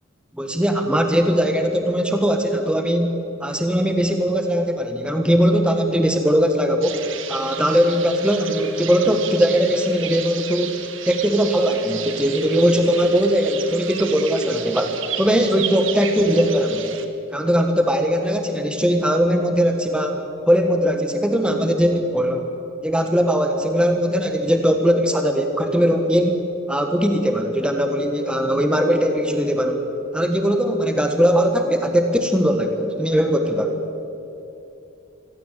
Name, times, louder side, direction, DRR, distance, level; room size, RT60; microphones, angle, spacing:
voice 1, 0.3-7.0 7.3-10.8 11.0-17.0 17.3-22.5 22.8-26.4 26.7-29.9 30.1-33.8, equal, 5° right, 5 dB, 1.3 m, -20 dB
sound 1, 6.8-17.1, right 9 dB, 75° right, 1.6 m, -33 dB
24.5 x 16.5 x 8.2 m, 2.8 s
head